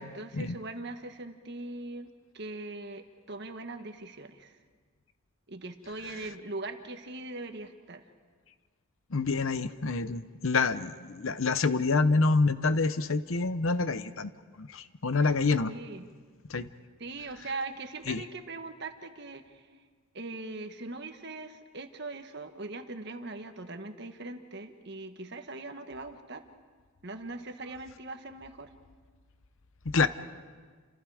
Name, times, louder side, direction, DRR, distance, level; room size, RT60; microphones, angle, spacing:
voice 1, 0.0-4.6 5.5-8.0 15.6-16.1 17.0-19.7 20.1-26.4 27.0-28.7, right 2 dB, 50° right, 6 dB, 1.5 m, -41 dB
voice 2, 9.1-14.3 14.6-15.7 16.5-16.7 18.1-18.2 29.9-30.1, left 3 dB, 65° left, 12 dB, 0.8 m, -27 dB
29.5 x 27.5 x 5.0 m, 1.6 s
head